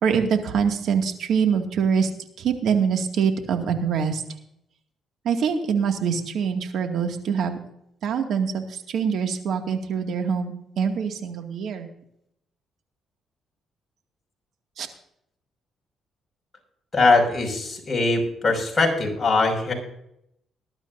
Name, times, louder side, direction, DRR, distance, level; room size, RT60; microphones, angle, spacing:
voice 1, 0.0-2.1 2.4-4.2 5.2-7.6 8.0-11.9 14.8-14.9, right 6 dB, 70° right, 5 dB, 2.1 m, -24 dB
voice 2, 16.9-19.7, left 3 dB, 25° left, 0 dB, 5.7 m, -21 dB
20.0 x 12.0 x 2.6 m, 0.75 s
cardioid pair, 90°, 0 cm